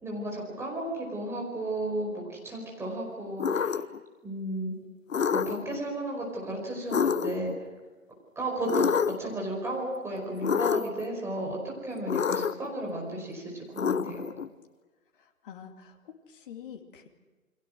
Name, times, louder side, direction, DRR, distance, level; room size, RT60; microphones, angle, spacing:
voice 1, 0.0-3.8 4.2-4.7 5.3-7.5 8.3-14.3, right 1 dB, 5° right, -2 dB, 5.0 m, -34 dB
sound 1, 3.4-4.0 5.1-5.8 6.9-7.6 8.7-9.3 10.4-11.0 12.1-12.7 13.8-14.5, left 7 dB, 65° left, 1.1 m, -27 dB
voice 2, 15.2-17.1, left 8 dB, 35° left, 4 dB, 2.6 m, -46 dB
29.5 x 23.0 x 6.3 m, 1.3 s
figure-of-eight pair, 140°, 43 cm